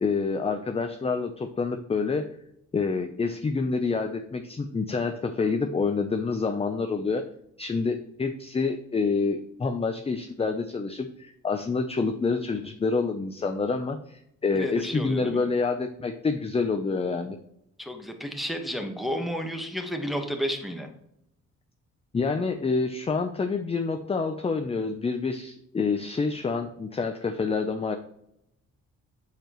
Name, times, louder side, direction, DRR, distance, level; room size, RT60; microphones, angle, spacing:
voice 1, 0.0-2.3 2.7-7.2 7.6-17.4 22.1-28.0, left 4 dB, 20° left, 6 dB, 0.5 m, -27 dB
voice 2, 14.5-15.5 17.8-20.9, equal, ahead, 3 dB, 1.3 m, -32 dB
7.7 x 6.8 x 3.0 m, 0.79 s
cardioid pair, 90°, 30 cm